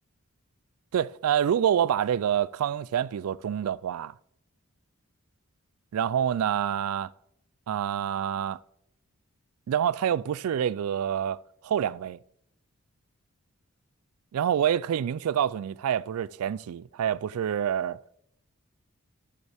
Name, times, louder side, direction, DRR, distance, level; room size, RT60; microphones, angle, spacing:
voice 1, 0.9-4.1 5.9-7.1 7.7-8.6 9.7-11.4 11.6-12.2 14.3-18.0, right 9 dB, 80° right, 0.3 m, -27 dB
12.5 x 6.8 x 3.5 m
head